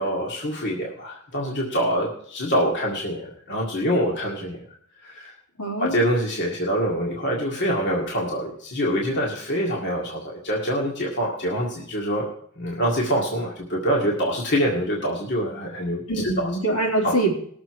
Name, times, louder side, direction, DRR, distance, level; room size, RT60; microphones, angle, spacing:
voice 1, 0.0-4.6 5.0-5.3 5.8-12.3 12.6-16.5 17.0-17.1, equal, 55° left, -2 dB, 1.9 m, -25 dB
voice 2, 5.6-6.0 16.1-17.3, right 2 dB, 85° left, -2 dB, 3.4 m, -24 dB
19.0 x 6.9 x 4.7 m, 0.62 s
head